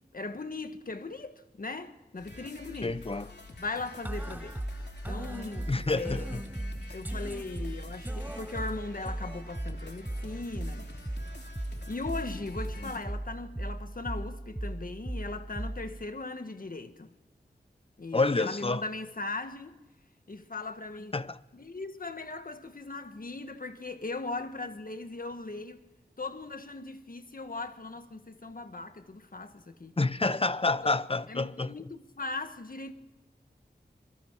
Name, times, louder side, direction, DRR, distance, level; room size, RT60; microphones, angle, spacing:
voice 1, 0.1-3.0 3.6-4.6 5.1-6.4 6.9-10.9 11.9-17.1 18.0-19.8 20.3-21.2 21.5-25.8 26.2-30.0 30.8-30.9 31.3-32.9, left 3 dB, 55° left, 1.6 m, -39 dB
sound 1, 2.2-13.0, left 3 dB, 75° left, 3.4 m, -49 dB
voice 2, 2.8-3.3 5.7-6.4 12.8-12.9 18.1-18.8 21.1-21.4 30.0-31.7, left 3 dB, 30° left, 0.7 m, -28 dB
sound 2, 4.0-16.0, right 1 dB, 10° right, 0.6 m, -37 dB
27.5 x 22.5 x 4.7 m
wide cardioid pair, 80°, 18 cm